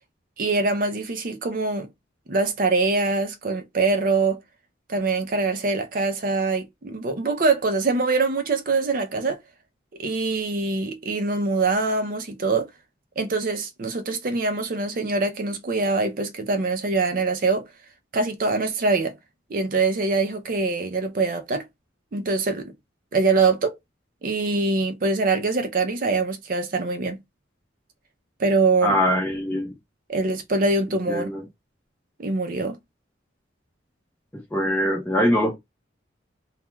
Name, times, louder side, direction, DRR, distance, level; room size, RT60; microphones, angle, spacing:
voice 1, 0.4-1.9 2.3-4.4 4.9-9.4 10.0-12.7 13.2-17.7 18.1-19.1 19.5-21.7 22.1-22.7 23.1-23.7 24.2-27.2 28.4-29.0 30.1-31.3 32.2-32.8, right 3 dB, 45° right, 0.5 m, -23 dB
voice 2, 28.8-29.7 31.1-31.4 34.5-35.6, equal, 10° left, 0.6 m, -22 dB
2.2 x 2.2 x 3.0 m
head